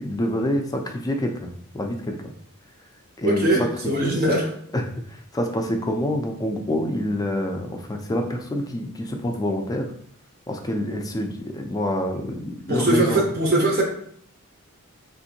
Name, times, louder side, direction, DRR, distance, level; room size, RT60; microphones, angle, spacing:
voice 1, 0.0-1.5 1.7-2.3 3.2-3.7 4.0-4.2 4.7-4.8 5.3-9.9 10.5-13.3, left 1 dB, 15° left, 4 dB, 0.3 m, -26 dB
voice 2, 3.2-4.5 12.7-13.8, right 1 dB, 40° right, 0 dB, 0.6 m, -21 dB
3.6 x 2.5 x 2.7 m, 0.64 s
head